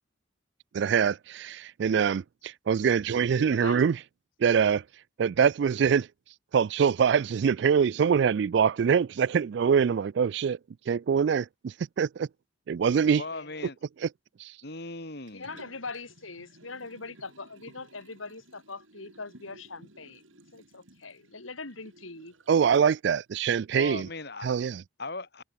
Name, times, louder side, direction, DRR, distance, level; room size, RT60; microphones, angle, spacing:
voice 1, 0.7-4.0 4.4-4.8 5.2-6.1 6.5-10.6 10.9-12.3 12.7-13.2 14.0-14.1 14.4-14.5 22.5-24.1 24.4-24.8, right 7 dB, 60° right, 0.3 m, -24 dB
voice 2, 3.4-3.8 12.7-13.6 15.3-22.3, left 3 dB, 85° left, 3.0 m, -42 dB
voice 3, 13.2-13.8 14.6-15.6 23.7-24.5 25.0-25.4, left 2 dB, 55° left, 3.3 m, -38 dB
Liquid, 15.3-22.9 23.4-23.5, right 2 dB, 80° right, 4.4 m, -56 dB
head